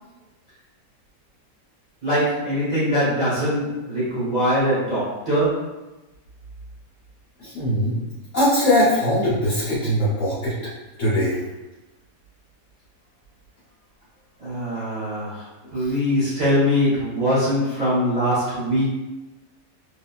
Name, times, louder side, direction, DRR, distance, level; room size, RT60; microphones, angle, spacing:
voice 1, 2.0-5.8 14.4-15.5 15.7-18.9, equal, 25° right, -12 dB, 1.4 m, -22 dB
voice 2, 7.4-8.0 8.3-10.5 11.0-11.4, equal, 50° left, -10 dB, 1.2 m, -20 dB
2.9 x 2.8 x 2.3 m, 1.0 s
omnidirectional pair, 1.8 m